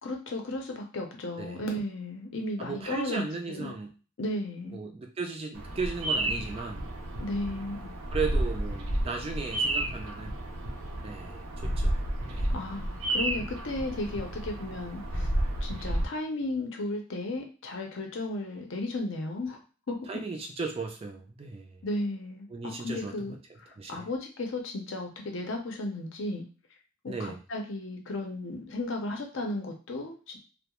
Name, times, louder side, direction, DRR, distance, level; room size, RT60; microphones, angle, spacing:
voice 1, 0.0-3.7 4.2-4.8 7.2-7.9 12.5-15.3 15.6-19.6 19.9-20.2 21.8-23.3 23.6-26.4 27.0-30.4, left 2 dB, 60° left, 2 dB, 0.6 m, -34 dB
voice 2, 2.6-3.9 4.7-6.9 8.1-10.3 11.0-11.9 12.3-12.5 20.1-21.8 22.5-23.3 23.8-24.1 27.1-27.4, right 4 dB, 25° right, 3 dB, 0.3 m, -36 dB
Bird vocalization bird call bird song, 5.5-16.1, right 1 dB, 80° right, 0.6 m, -31 dB
2.3 x 2.0 x 2.9 m, 0.36 s
head